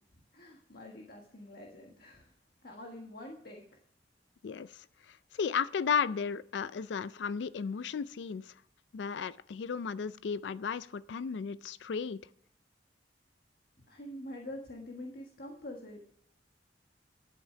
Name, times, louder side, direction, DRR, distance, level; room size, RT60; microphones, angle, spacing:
voice 1, 0.3-2.3 2.6-3.8 13.8-16.1, left 1 dB, 60° left, 1.5 m, -46 dB
voice 2, 4.4-8.4 8.9-12.2, left 6 dB, 80° left, 0.4 m, -34 dB
11.5 x 8.2 x 5.7 m
head